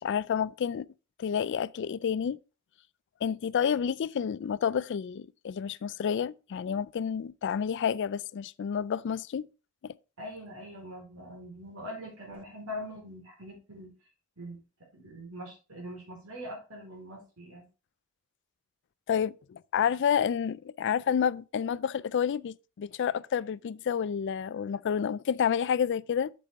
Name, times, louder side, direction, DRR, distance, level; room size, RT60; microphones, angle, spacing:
voice 1, 0.0-0.9 1.2-2.4 3.2-9.4 9.8-9.9 19.1-26.3, left 7 dB, 55° left, 0.3 m, -29 dB
voice 2, 10.2-13.9 14.4-14.6 14.9-17.7, equal, 70° right, 4.5 m, -42 dB
8.1 x 7.3 x 3.6 m
head